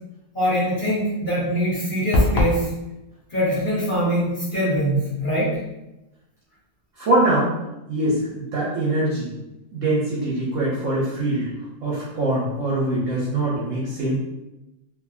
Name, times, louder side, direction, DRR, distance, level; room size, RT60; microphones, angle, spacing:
voice 1, 0.3-2.7 3.3-5.6 8.0-8.1 13.5-13.6, equal, 35° left, -11 dB, 1.3 m, -23 dB
sound 1, 2.1-2.6, left 1 dB, 80° left, 0.5 m, -19 dB
voice 2, 7.0-7.5 7.9-9.3 9.7-11.5 11.8-14.2, right 1 dB, 65° right, -6 dB, 0.9 m, -23 dB
2.8 x 2.6 x 2.4 m, 0.96 s
omnidirectional pair, 1.7 m